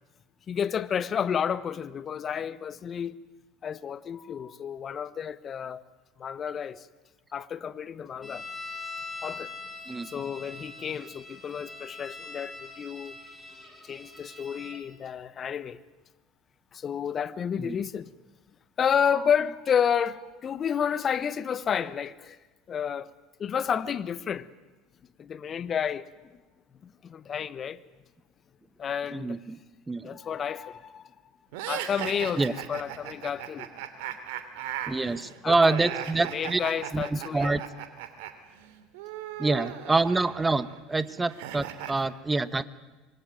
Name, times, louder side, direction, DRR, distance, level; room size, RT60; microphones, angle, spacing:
voice 1, 0.5-3.2 3.6-5.8 6.2-6.9 7.3-8.5 9.2-9.5 10.0-13.2 13.8-15.8 16.7-18.1 18.8-22.4 22.7-23.1 23.4-24.5 25.2-26.3 26.8-27.9 28.8-29.4 30.0-31.1 31.7-33.7 35.1-35.2 35.4-35.9 36.3-37.6, left 8 dB, 35° left, 1.3 m, -31 dB
sound 1, 8.2-14.8, left 3 dB, 10° left, 5.5 m, -42 dB
voice 2, 29.1-29.6 29.9-30.2 32.4-32.5 34.9-36.6 36.9-37.6 39.4-42.6, right 3 dB, 15° right, 1.3 m, -26 dB
sound 2, 31.5-38.3 38.6-41.9, right 11 dB, 65° right, 2.9 m, -38 dB
25.5 x 22.5 x 9.2 m
hypercardioid pair, 75°, 0 cm